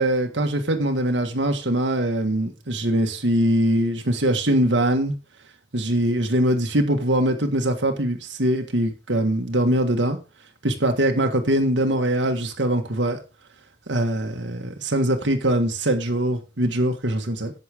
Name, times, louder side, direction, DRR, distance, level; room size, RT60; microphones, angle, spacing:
voice 1, 0.0-5.1 5.7-10.2 10.6-13.2 13.9-17.5, right 1 dB, 80° right, 1.6 m, -22 dB
11.0 x 8.4 x 3.6 m
head